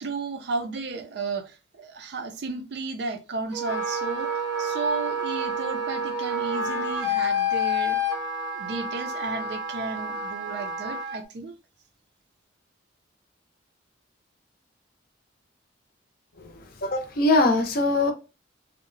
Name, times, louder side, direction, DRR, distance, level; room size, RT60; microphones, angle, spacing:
voice 1, 0.0-4.3 4.6-8.0 8.5-11.5, right 3 dB, 60° right, 0.4 m, -33 dB
Wind instrument woodwind instrument, 3.5-11.2, left 1 dB, 85° right, 0.9 m, -29 dB
voice 2, 16.8-18.1, left 2 dB, 50° left, 0.5 m, -22 dB
2.8 x 2.1 x 2.5 m
head